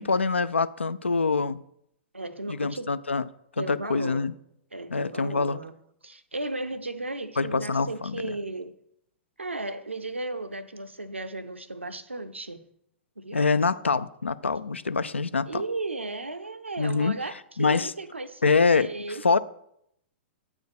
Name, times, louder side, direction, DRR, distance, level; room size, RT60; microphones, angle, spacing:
voice 1, 0.0-1.6 2.5-3.2 3.6-4.3 4.9-5.6 7.4-8.3 13.3-15.6 16.8-17.2 17.6-17.9 18.4-19.4, left 4 dB, 85° left, 0.4 m, -25 dB
voice 2, 2.1-2.9 3.6-4.3 4.7-5.7 6.0-8.7 9.4-12.6 13.2-13.5 15.5-19.4, right 2 dB, 85° right, 0.6 m, -35 dB
8.2 x 4.5 x 5.1 m
figure-of-eight pair, 110°, 6 cm